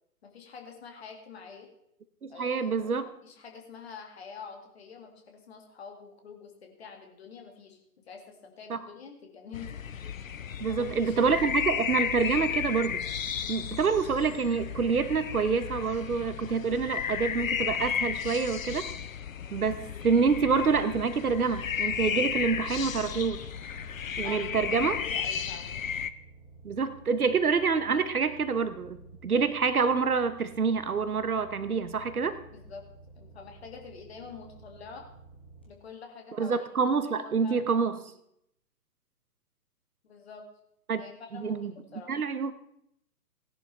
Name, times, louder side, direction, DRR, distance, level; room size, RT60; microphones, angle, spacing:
voice 1, 0.2-1.7 2.3-7.8 8.1-9.8 10.7-11.2 24.2-25.7 32.5-32.8 33.2-35.1 35.7-37.8 40.0-40.4 41.0-41.6 41.9-42.1, left 5 dB, 40° left, 3 dB, 2.3 m, -46 dB
voice 2, 2.2-3.1 8.7-8.8 10.6-13.0 13.5-18.9 19.5-23.4 24.2-25.0 26.6-29.0 29.2-32.4 36.4-38.0 40.9-41.0 41.3-41.7 42.1-42.5, right 5 dB, 65° right, 12 dB, 1.0 m, -27 dB
sound 1, 9.5-26.1, left 8 dB, 55° left, 0.6 m, -34 dB
sound 2, 20.1-35.7, right 3 dB, 5° left, 0.5 m, -52 dB
17.5 x 10.5 x 3.3 m, 0.75 s
figure-of-eight pair, 130°, 48 cm